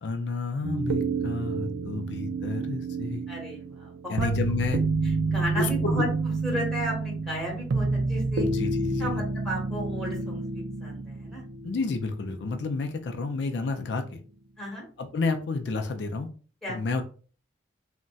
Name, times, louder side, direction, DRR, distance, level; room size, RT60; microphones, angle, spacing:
voice 1, 0.0-3.3 4.1-4.8 5.6-6.0 8.4-9.2 11.6-14.2 15.0-16.3 16.7-17.0, left 3 dB, 70° left, 6 dB, 0.4 m, -30 dB
sound 1, 0.6-12.7 13.0-13.1, right 3 dB, 90° right, 0.4 m, -29 dB
voice 2, 3.3-4.3 5.2-8.5 9.0-11.4 14.6-14.8 16.6-16.8, equal, ahead, -3 dB, 1.3 m, -34 dB
3.9 x 2.2 x 2.3 m, 0.39 s
head